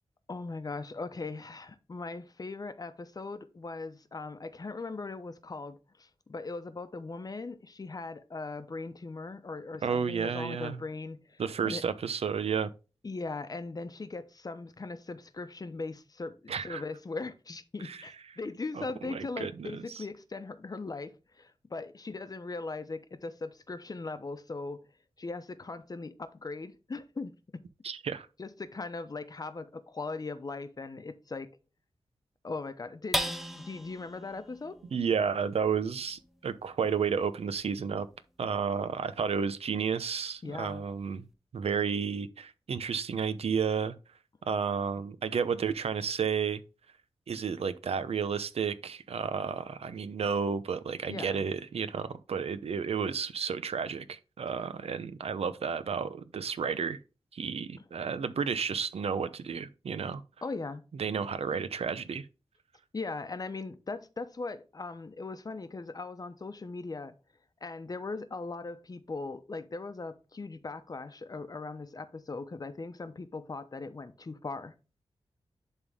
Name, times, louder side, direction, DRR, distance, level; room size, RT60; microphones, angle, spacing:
voice 1, 0.3-11.8 13.0-24.9 25.2-27.6 28.4-31.5 32.4-34.8 40.4-40.9 51.1-51.4 60.4-60.8 62.9-67.1 67.6-74.7, left 3 dB, 40° left, 0.9 m, -39 dB
voice 2, 9.8-10.8 11.4-12.7 16.5-16.8 17.8-18.1 18.7-20.0 27.8-28.3 34.9-38.1 38.4-41.2 41.5-43.9 44.5-46.6 47.3-57.0 57.3-60.2 60.9-62.3, right 6 dB, 85° right, 0.7 m, -32 dB
sound 1, 33.1-39.8 40.3-40.4 40.8-41.3, equal, ahead, 0.8 m, -40 dB
11.0 x 3.6 x 3.5 m
wide cardioid pair, 115°, 10 cm